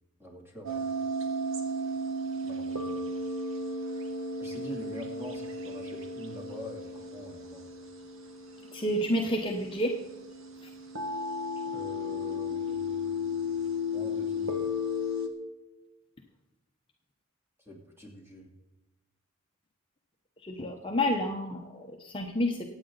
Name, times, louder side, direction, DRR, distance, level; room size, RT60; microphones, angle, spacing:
voice 1, 0.2-0.8 2.4-3.1 4.4-7.7 11.7-13.6 13.9-14.8 17.6-18.5 20.9-21.0, equal, 10° right, -1 dB, 3.0 m, -45 dB
sound 1, 0.6-15.3, left 2 dB, 75° right, 1.7 m, -34 dB
voice 2, 8.7-10.0 20.4-22.6, left 1 dB, 25° left, 1 dB, 0.9 m, -29 dB
24.5 x 8.9 x 4.0 m, 1.0 s
head